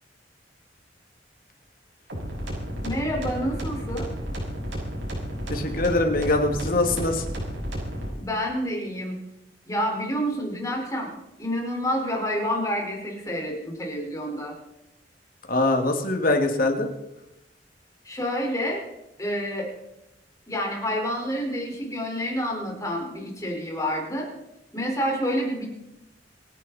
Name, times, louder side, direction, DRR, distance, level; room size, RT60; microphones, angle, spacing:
sound 1, 2.1-8.1, equal, 90° right, 6.5 m, -32 dB
voice 1, 2.8-4.1 8.2-9.2 9.7-11.1 11.4-14.5 18.0-18.8 19.2-19.7 20.5-24.3 24.7-25.7, equal, 20° left, -1 dB, 4.6 m, -28 dB
voice 2, 5.5-7.2 15.5-16.9, left 2 dB, 50° left, 4 dB, 2.2 m, -23 dB
27.5 x 11.0 x 4.2 m, 0.90 s
head